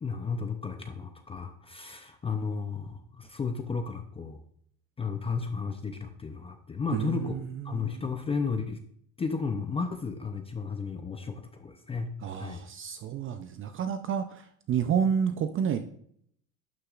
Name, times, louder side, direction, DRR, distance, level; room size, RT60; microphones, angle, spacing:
voice 1, 0.0-4.4 5.0-7.4 7.6-8.8 9.2-12.1 12.4-12.6, left 5 dB, 15° left, 6 dB, 0.5 m, -33 dB
voice 2, 6.9-8.1 12.2-15.8, right 7 dB, 30° right, 8 dB, 0.5 m, -30 dB
12.0 x 6.6 x 2.4 m, 0.65 s
supercardioid pair, 125°, 41 cm